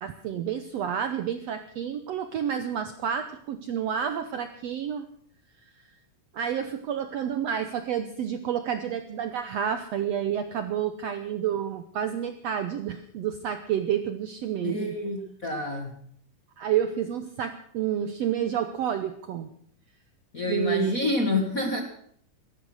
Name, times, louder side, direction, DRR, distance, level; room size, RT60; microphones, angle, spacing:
voice 1, 0.0-5.1 6.3-14.9 16.6-19.5 20.5-21.0, right 9 dB, 70° right, 9 dB, 1.6 m, -29 dB
voice 2, 14.6-15.9 20.3-21.8, left 2 dB, 35° left, 4 dB, 1.5 m, -28 dB
17.0 x 13.5 x 6.3 m, 0.64 s
omnidirectional pair, 3.8 m